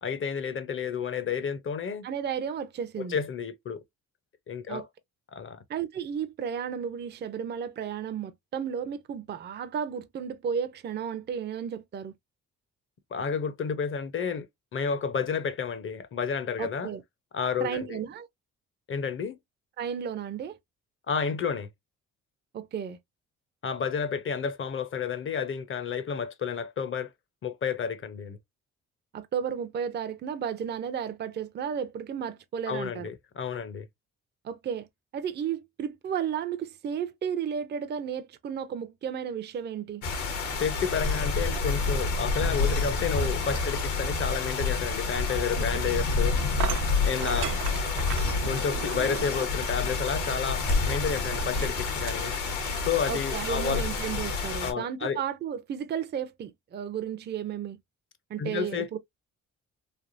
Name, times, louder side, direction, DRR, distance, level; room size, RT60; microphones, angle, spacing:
voice 1, 0.0-2.1 3.0-3.8 4.5-4.8 5.3-5.6 13.1-14.5 14.7-16.9 17.3-18.0 18.9-19.4 21.1-21.7 23.6-27.1 27.4-28.4 32.7-33.9 40.6-46.4 47.0-47.6 48.4-52.3 52.8-53.8 54.6-55.2 58.4-59.0, left 6 dB, 45° left, 0.6 m, -31 dB
voice 2, 2.0-3.2 4.7-4.9 5.7-12.1 16.6-17.0 17.6-18.3 19.8-20.6 22.5-23.0 29.1-33.1 34.4-34.9 35.1-40.0 45.6-45.7 53.1-57.8 58.3-59.0, right 8 dB, 35° right, 0.5 m, -33 dB
sound 1, 40.0-54.7, left 4 dB, 80° left, 1.2 m, -28 dB
sound 2, 45.6-45.7 46.6-49.7 50.3-50.9 51.5-54.2, right 10 dB, 90° right, 0.6 m, -38 dB
3.3 x 2.2 x 2.5 m
cardioid pair, 90°, 30 cm